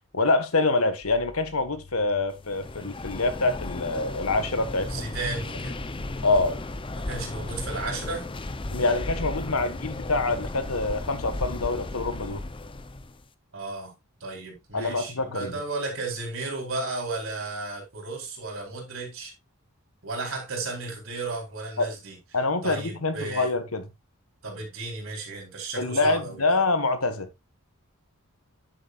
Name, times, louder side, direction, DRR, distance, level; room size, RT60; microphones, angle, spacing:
voice 1, 0.1-5.0 6.2-6.6 8.7-12.4 14.7-15.5 21.8-21.9 22.3-23.8 25.8-27.3, left 3 dB, 85° left, 1.5 m, -26 dB
sound 1, 1.0-8.5 8.9-9.7, left 1 dB, 15° right, 3.2 m, -49 dB
sound 2, 2.4-13.2, left 2 dB, 25° left, 0.7 m, -35 dB
voice 2, 4.9-5.8 7.1-8.3 13.5-13.9 14.2-19.3 20.0-22.2 22.6-23.5 24.4-26.4, right 3 dB, 70° right, 4.3 m, -34 dB
9.9 x 8.0 x 2.5 m
head